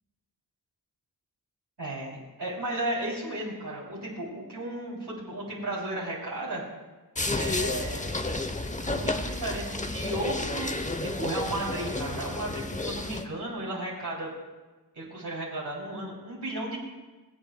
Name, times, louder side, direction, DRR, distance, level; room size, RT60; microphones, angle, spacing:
voice 1, 1.8-6.6 7.3-8.0 8.8-14.3 14.9-16.8, right 1 dB, 85° right, -5 dB, 3.1 m, -34 dB
sound 1, 7.2-13.3, left 2 dB, 20° left, 0.8 m, -31 dB
23.0 x 7.9 x 2.3 m, 1.2 s
wide cardioid pair, 45°, 39 cm